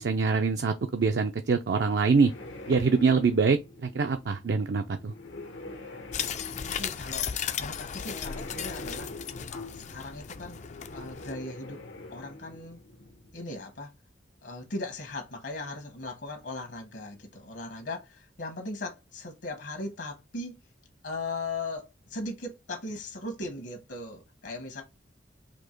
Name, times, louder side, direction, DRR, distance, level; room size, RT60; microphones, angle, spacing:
voice 1, 0.0-2.3 2.7-5.1, right 4 dB, 65° right, 0.4 m, -24 dB
sound 1, 1.6-13.4, left 2 dB, 85° left, 1.0 m, -45 dB
sound 2, 6.1-11.3, left 8 dB, 40° left, 0.3 m, -36 dB
voice 2, 6.8-7.3 7.6-9.1 9.7-10.6 10.9-11.8 12.1-12.8 13.3-13.9 14.4-20.6 21.0-24.8, left 2 dB, 70° left, 1.2 m, -38 dB
4.4 x 2.7 x 4.4 m
head